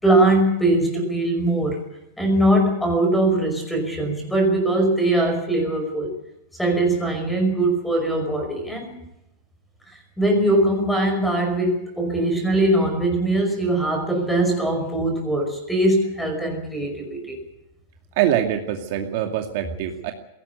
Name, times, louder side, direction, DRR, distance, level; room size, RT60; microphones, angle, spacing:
voice 1, 0.0-1.8 2.2-6.1 6.6-9.0 9.9-17.4, right 1 dB, 5° left, 4 dB, 5.4 m, -21 dB
voice 2, 18.2-20.1, right 11 dB, 45° right, 4 dB, 2.3 m, -23 dB
22.0 x 17.5 x 8.3 m, 0.87 s
supercardioid pair, 170°, 0 cm